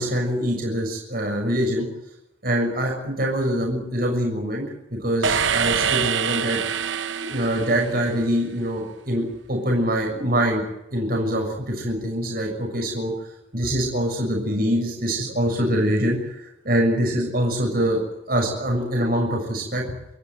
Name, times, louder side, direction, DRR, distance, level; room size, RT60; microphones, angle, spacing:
voice 1, 0.0-1.9 2.4-4.6 5.0-6.6 7.2-10.6 10.9-13.1 13.5-18.0 18.3-19.8, equal, 50° right, 0 dB, 6.8 m, -24 dB
sound 1, 5.2-8.4, right 7 dB, 70° right, 0.8 m, -25 dB
28.5 x 14.0 x 9.5 m, 0.86 s
head